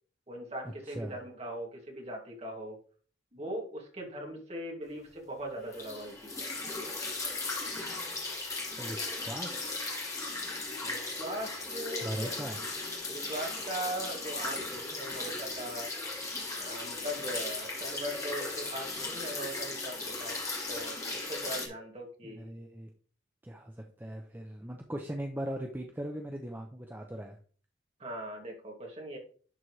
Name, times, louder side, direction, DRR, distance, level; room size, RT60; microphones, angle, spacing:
voice 1, 0.3-2.8 3.3-6.5 10.8-12.5 13.1-15.9 16.6-20.4 20.7-22.5 28.0-29.2, right 1 dB, 35° right, 0 dB, 2.4 m, -40 dB
voice 2, 0.9-1.2 8.8-10.0 12.0-12.6 22.2-22.9 23.4-27.4, right 1 dB, 10° right, 2 dB, 0.7 m, -39 dB
sound 1, 5.7-21.7, left 3 dB, 20° left, 1.9 m, -37 dB
11.0 x 4.4 x 3.2 m, 0.42 s
head